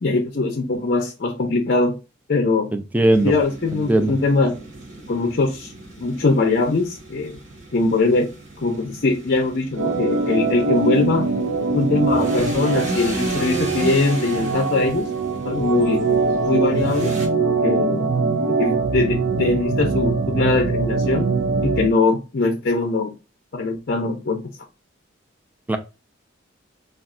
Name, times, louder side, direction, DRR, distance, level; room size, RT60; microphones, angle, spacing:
voice 1, 0.0-1.9 2.3-2.7 3.2-4.6 5.1-5.7 6.0-7.4 7.7-8.3 8.6-11.3 11.7-15.1 15.4-16.0 16.4-17.2 17.6-18.1 18.5-21.3 21.6-23.1 23.5-24.4, left 3 dB, 50° left, 0.5 m, -21 dB
voice 2, 2.7-3.3 3.9-4.1 25.7-25.8, right 1 dB, 10° right, 0.3 m, -18 dB
sound 1, 3.1-17.3, right 1 dB, 35° right, 0.9 m, -35 dB
Organ, 9.8-21.9, right 4 dB, 70° right, 0.5 m, -22 dB
2.3 x 2.3 x 3.6 m
head